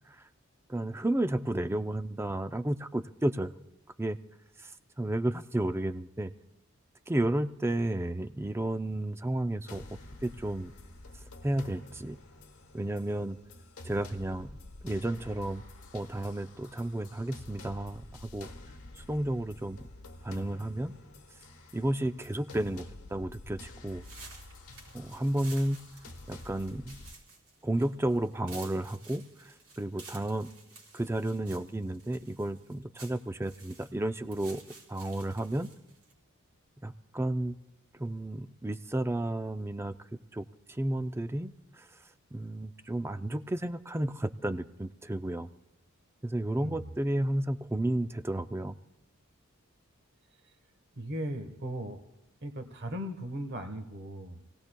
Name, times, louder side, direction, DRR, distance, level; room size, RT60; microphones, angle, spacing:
voice 1, 0.7-3.5 4.0-4.2 4.6-4.7 5.0-6.3 7.1-9.8 10.2-10.7 11.4-12.2 12.7-13.4 13.8-14.6 14.8-15.6 15.9-18.5 19.0-19.8 20.2-21.0 21.7-24.0 24.9-25.8 26.3-27.0 27.6-30.5 30.9-34.6 34.9-35.7 36.8-37.6 37.9-39.9 40.3-41.9 42.3-45.5 46.2-48.8, right 1 dB, 10° right, 10 dB, 0.4 m, -32 dB
sound 1, 9.7-27.1, left 2 dB, 85° left, 1.2 m, -49 dB
sound 2, 24.0-36.1, right 3 dB, 85° right, 4.0 m, -52 dB
voice 2, 51.0-52.0 52.4-54.6, right 1 dB, 50° right, 7 dB, 1.2 m, -38 dB
28.5 x 17.5 x 2.3 m, 0.92 s
head